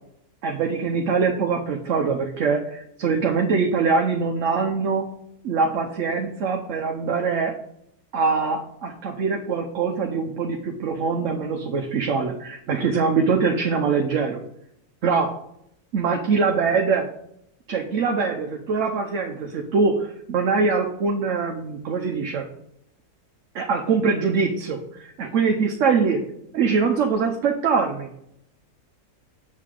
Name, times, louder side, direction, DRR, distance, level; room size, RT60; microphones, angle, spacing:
voice 1, 0.4-5.1 5.4-7.5 8.1-14.4 15.0-15.3 15.9-17.1 17.7-22.5 23.5-26.2 26.5-28.1, right 5 dB, 60° right, 3 dB, 1.0 m, -23 dB
7.4 x 6.6 x 3.7 m, 0.75 s
omnidirectional pair, 1.7 m